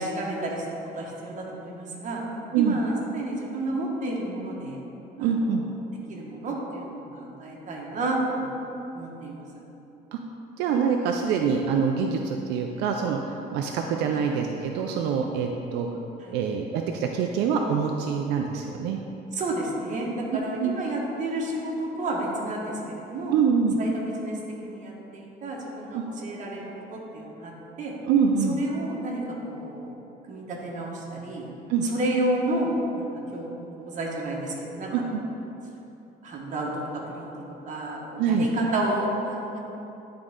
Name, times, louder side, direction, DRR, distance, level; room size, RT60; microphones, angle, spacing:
voice 1, 0.0-2.2 2.5-4.8 5.2-5.5 6.1-8.4 8.9-9.4 14.1-14.3 16.2-16.4 19.3-23.3 23.8-27.9 28.5-29.9 30.3-31.5 31.8-33.5 33.8-35.2 36.2-37.3 37.7-39.6, right 1 dB, 50° right, -2 dB, 1.4 m, -31 dB
voice 2, 5.2-5.6 10.1-10.2 10.6-15.9 16.3-19.0 20.3-20.7 23.3-23.8 25.9-26.0 28.0-28.6 31.7-31.9 34.9-35.2 38.2-38.5, right 6 dB, 90° right, 2 dB, 0.5 m, -25 dB
10.5 x 3.8 x 3.7 m, 2.9 s
cardioid pair, 110°, 17 cm